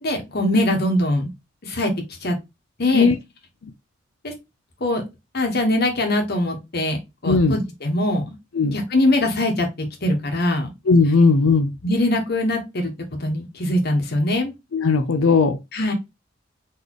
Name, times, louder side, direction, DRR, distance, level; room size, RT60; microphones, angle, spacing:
voice 1, 0.0-1.3 1.6-1.9 2.2-2.3 2.8-3.1 4.2-4.3 4.8-5.0 5.3-7.0 7.2-8.3 8.7-10.7 11.8-12.9 13.2-14.5 15.7-15.9, left 1 dB, 55° left, 1.4 m, -22 dB
voice 2, 7.2-7.6 8.5-8.8 10.9-11.7 14.7-15.6, left 4 dB, 85° left, 0.6 m, -17 dB
4.2 x 3.3 x 3.0 m
head